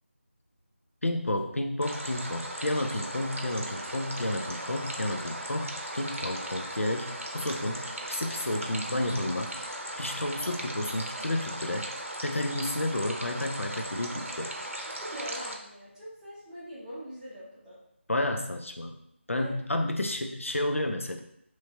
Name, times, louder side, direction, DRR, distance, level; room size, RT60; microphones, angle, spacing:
voice 1, 1.0-9.7 10.0-11.9 12.2-14.5 18.1-19.0 19.3-21.2, left 1 dB, 85° left, 5 dB, 0.6 m, -31 dB
sound 1, 1.8-15.6, right 1 dB, 90° right, 0.7 m, -37 dB
voice 2, 15.0-17.8 19.3-19.5, equal, 5° right, -13 dB, 0.7 m, -42 dB
3.1 x 2.8 x 3.3 m, 0.73 s
figure-of-eight pair, 165°, 7 cm